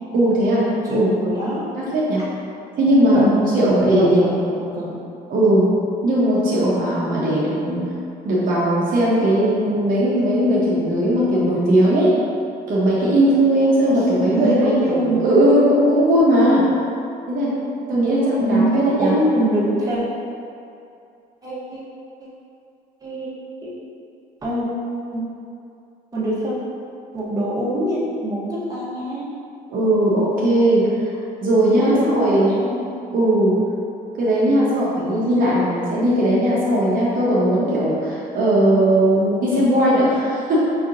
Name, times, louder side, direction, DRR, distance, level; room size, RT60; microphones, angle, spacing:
voice 1, 0.1-0.6 0.9-1.1 1.8-2.2 2.8-4.3 5.3-5.7 6.0-7.8 8.2-12.1 12.7-16.6 17.3-17.5 17.9-19.1 29.7-32.5 33.1-33.5 34.2-40.7, right 1 dB, 55° right, -7 dB, 0.9 m, -18 dB
voice 2, 0.8-1.7 3.1-5.0 13.9-14.0 14.3-15.4 18.4-20.0 21.4-21.8 23.0-23.3 23.6-23.7 24.4-24.7 25.1-25.2 26.1-26.5 27.1-29.3 31.7-32.9, right 1 dB, 20° right, -8 dB, 1.0 m, -24 dB
5.0 x 2.9 x 2.5 m, 2.5 s
cardioid pair, 110°, 17 cm